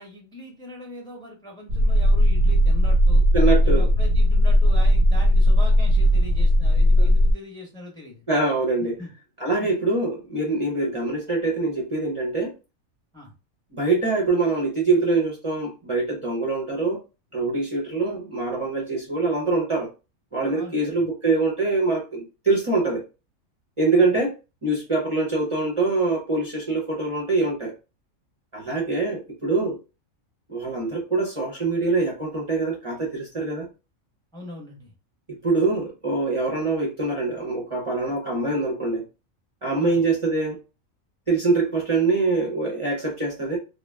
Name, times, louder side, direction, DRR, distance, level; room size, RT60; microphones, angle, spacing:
voice 1, 0.0-3.2 3.6-8.2 9.0-9.1 13.1-13.3 20.5-21.0 23.9-24.1 34.3-34.9 39.8-40.0, left 1 dB, 5° left, -1 dB, 0.7 m, -40 dB
sound 1, 1.7-7.3, equal, 90° right, 1.0 m, -17 dB
voice 2, 3.3-3.9 7.0-7.1 8.3-8.9 9.4-12.5 13.7-17.0 17.3-19.9 20.3-23.0 23.8-24.3 24.6-27.7 28.5-29.8 30.5-33.7 35.4-39.0 39.6-40.6 41.3-43.6, right 3 dB, 35° right, -3 dB, 0.6 m, -24 dB
2.4 x 2.1 x 3.2 m, 0.30 s
omnidirectional pair, 1.4 m